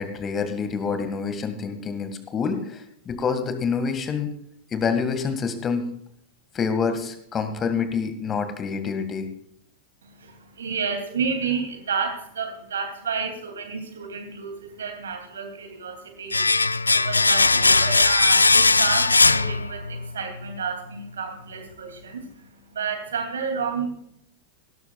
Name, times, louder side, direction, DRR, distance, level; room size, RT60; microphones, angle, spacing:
voice 1, 0.0-4.3 4.7-5.9 6.5-9.3, left 5 dB, 25° left, 8 dB, 1.9 m, -27 dB
voice 2, 10.0-23.9, right 5 dB, 65° right, 5 dB, 2.7 m, -31 dB
Domestic sounds home sounds, 16.3-20.1 20.4-20.5, left 3 dB, 80° left, 0.3 m, -19 dB
17.5 x 12.5 x 2.4 m, 0.70 s
figure-of-eight pair, 90°, 0 cm